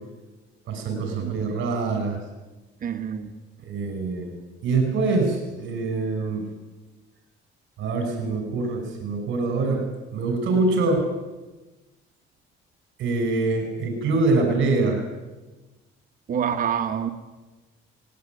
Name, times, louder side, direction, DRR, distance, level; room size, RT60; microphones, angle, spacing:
voice 1, 0.7-2.2 3.6-4.3 4.6-6.5 7.8-9.9 10.1-11.0 13.0-15.0, right 3 dB, 60° right, 4 dB, 5.8 m, -24 dB
voice 2, 2.8-3.3 16.3-17.1, right 8 dB, 40° right, 7 dB, 1.4 m, -27 dB
19.5 x 18.5 x 9.5 m, 1.2 s
cardioid pair, 165°, 21 cm